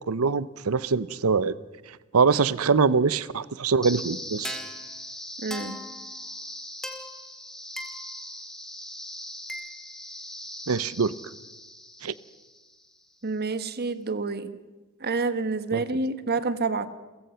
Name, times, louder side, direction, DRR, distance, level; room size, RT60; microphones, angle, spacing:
voice 1, 0.1-1.5 2.1-4.6 10.7-11.1 12.0-12.1 15.7-15.8, right 5 dB, 75° right, 18 dB, 0.7 m, -23 dB
sound 1, 3.8-12.9, left 1 dB, ahead, 2.1 m, -39 dB
voice 2, 5.4-5.8 13.2-14.6 15.0-16.9, right 3 dB, 50° right, 13 dB, 1.2 m, -28 dB
29.5 x 15.5 x 5.7 m, 1.2 s
head